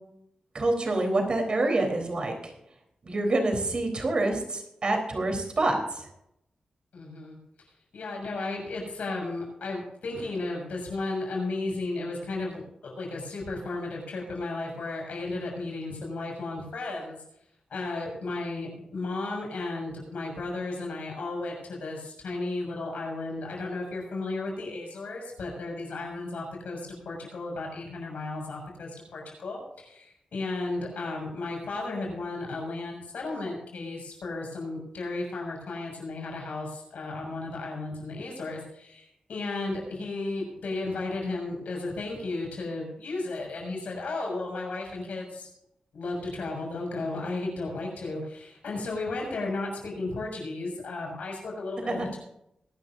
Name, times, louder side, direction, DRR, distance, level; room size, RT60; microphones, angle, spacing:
voice 1, 0.5-2.5 3.0-6.1 51.9-52.1, right 2 dB, 40° right, 3 dB, 3.8 m, -27 dB
voice 2, 6.9-7.4 7.9-17.2 17.7-45.5 45.9-52.2, left 2 dB, 85° left, 0 dB, 6.7 m, -34 dB
22.5 x 12.0 x 2.7 m, 0.78 s
wide cardioid pair, 170°, 2 cm